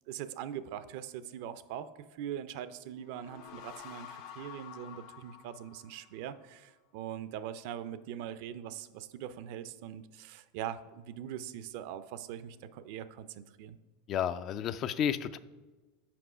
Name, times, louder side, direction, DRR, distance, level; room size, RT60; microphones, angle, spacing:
voice 1, 0.1-13.8, right 10 dB, 60° right, 13 dB, 0.4 m, -42 dB
sound 1, 2.9-6.4, left 8 dB, 60° left, 0.8 m, -49 dB
voice 2, 14.1-15.4, left 9 dB, 45° left, 14 dB, 0.4 m, -31 dB
6.0 x 4.8 x 4.9 m, 1.2 s
hypercardioid pair, 110°, 0 cm